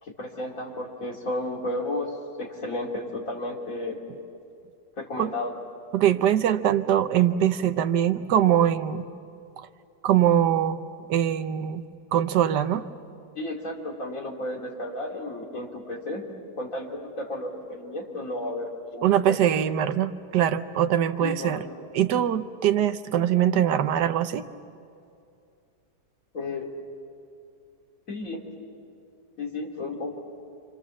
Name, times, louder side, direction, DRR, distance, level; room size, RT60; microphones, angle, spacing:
voice 1, 0.0-4.0 5.0-5.5 13.3-16.3 16.6-19.4 21.2-21.6 26.3-26.7 28.1-28.4 29.4-30.1, left 1 dB, 50° left, -1 dB, 3.5 m, -33 dB
voice 2, 5.9-9.1 10.0-10.8 11.1-11.8 12.1-12.9 19.0-21.6 21.9-24.4, right 10 dB, 80° right, 10 dB, 1.5 m, -22 dB
29.0 x 25.5 x 7.3 m, 2.5 s
omnidirectional pair, 1.8 m